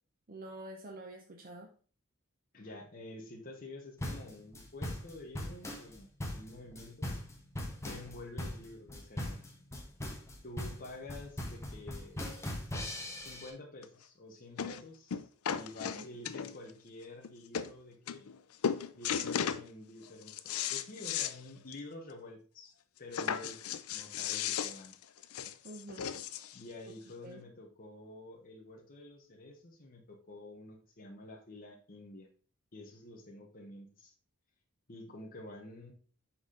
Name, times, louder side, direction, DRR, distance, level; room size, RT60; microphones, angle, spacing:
voice 1, 0.3-1.7 15.9-16.0 25.6-26.1 27.2-27.4, right 1 dB, 40° right, 2 dB, 0.8 m, -47 dB
voice 2, 2.5-6.1 6.4-7.2 7.8-9.4 10.4-12.2 13.2-15.2 15.5-18.3 18.9-24.9 26.5-32.3 32.7-34.1 34.9-35.9, left 2 dB, 45° left, -1 dB, 1.2 m, -49 dB
sound 1, 4.0-13.5, left 1 dB, 15° left, 1.1 m, -40 dB
sound 2, 13.8-13.9 14.6-14.8 15.1-16.7 17.2-17.3 17.5-17.7 18.1-18.4 18.6-19.6 20.0-21.4 21.7-21.8 22.1-22.2 23.1-26.6 27.4-27.5, left 8 dB, 85° left, 0.5 m, -35 dB
5.8 x 4.2 x 4.9 m, 0.39 s
head